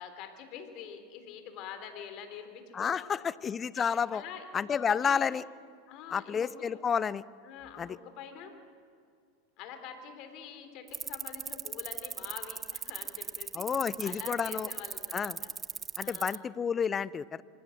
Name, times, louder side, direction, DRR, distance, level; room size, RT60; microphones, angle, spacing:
voice 1, 0.0-3.3 3.7-5.3 5.9-6.8 7.4-8.5 9.6-15.5 16.0-16.4, left 7 dB, 50° left, 7 dB, 3.4 m, -46 dB
voice 2, 2.7-4.2 4.5-5.4 6.1-7.2 7.8-8.0 13.5-14.7 15.1-15.4 16.0-17.4, left 7 dB, 25° left, 20 dB, 0.6 m, -30 dB
sound 1, 10.9-16.4, right 7 dB, 25° right, 0.5 m, -37 dB
26.0 x 19.5 x 6.5 m, 2.3 s
hypercardioid pair, 90°, 0 cm